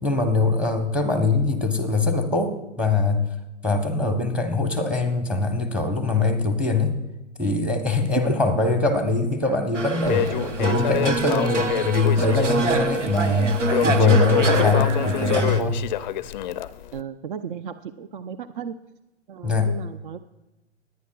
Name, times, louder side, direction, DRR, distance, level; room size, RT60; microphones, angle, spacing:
voice 1, 0.0-3.3 3.6-6.9 7.4-15.8 19.4-19.7, left 3 dB, 5° right, 6 dB, 0.9 m, -22 dB
sound 1, 9.7-15.6, right 3 dB, 90° right, 0.9 m, -26 dB
Crackle, 10.0-17.0, left 11 dB, 40° left, 0.4 m, -28 dB
voice 2, 16.9-18.8 19.3-20.2, right 8 dB, 45° right, 13 dB, 0.5 m, -34 dB
21.0 x 9.3 x 2.3 m, 1.0 s
hypercardioid pair, 125°, 36 cm